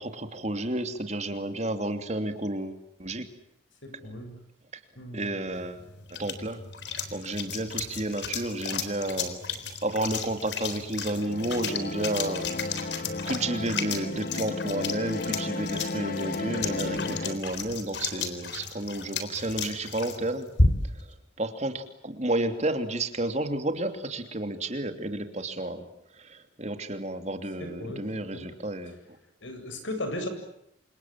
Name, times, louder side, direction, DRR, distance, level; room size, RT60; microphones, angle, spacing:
voice 1, 0.0-3.3 5.1-5.8 6.1-6.6 7.1-9.4 9.8-12.8 13.3-20.5 21.4-25.9 26.2-28.9, right 1 dB, 35° right, 8 dB, 2.9 m, -31 dB
voice 2, 3.8-4.4 5.0-5.4 27.6-28.5 28.9-29.0 29.4-30.3, left 1 dB, 90° left, 7 dB, 7.9 m, -37 dB
sound 1, 5.5-21.1, left 3 dB, 70° left, 3.9 m, -33 dB
sound 2, 11.1-17.4, left 2 dB, 50° left, 1.2 m, -34 dB
28.5 x 27.0 x 7.6 m, 0.77 s
head